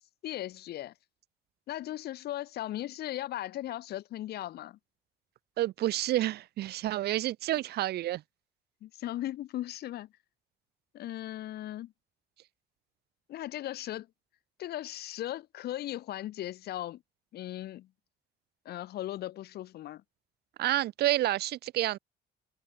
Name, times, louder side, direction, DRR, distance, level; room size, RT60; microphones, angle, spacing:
voice 1, 0.2-0.9 1.7-4.8 8.8-10.1 10.9-11.9 13.3-14.1 14.6-17.0 17.3-17.9 18.6-20.0, left 13 dB, 70° left, 6.6 m, -37 dB
voice 2, 5.6-8.2 20.6-22.0, right 14 dB, 70° right, 4.4 m, -29 dB
cardioid pair, 110°, 17 cm